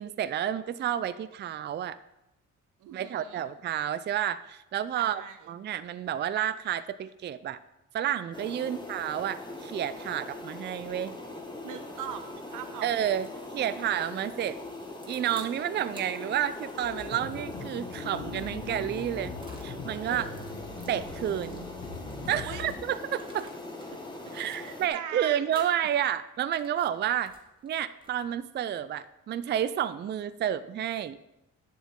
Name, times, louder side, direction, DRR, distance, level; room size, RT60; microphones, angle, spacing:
voice 1, 0.0-2.0 2.9-5.2 5.5-7.6 7.9-11.2 12.8-13.3 13.5-14.6 15.1-19.3 19.6-20.3 20.9-21.7 22.3-23.5 24.3-27.3 27.6-31.2, right 10 dB, 35° right, 14 dB, 0.4 m, -30 dB
voice 2, 2.8-3.4 4.9-5.5 8.6-8.9 11.6-13.1 13.5-13.6 20.0-20.4 22.4-22.6 24.5-25.7, right 9 dB, 85° right, 9 dB, 0.9 m, -41 dB
sound 1, 8.3-24.9, left 2 dB, 15° left, 1.5 m, -41 dB
sound 2, 13.0-13.4 14.3-15.5 15.9-19.7 20.2-23.9 24.2-25.0 25.5-25.8 26.3-28.5, right 1 dB, 15° right, 1.8 m, -56 dB
sound 3, 16.8-22.7, left 4 dB, 75° left, 1.9 m, -41 dB
9.4 x 7.1 x 3.7 m, 0.90 s
cardioid pair, 90°, 30 cm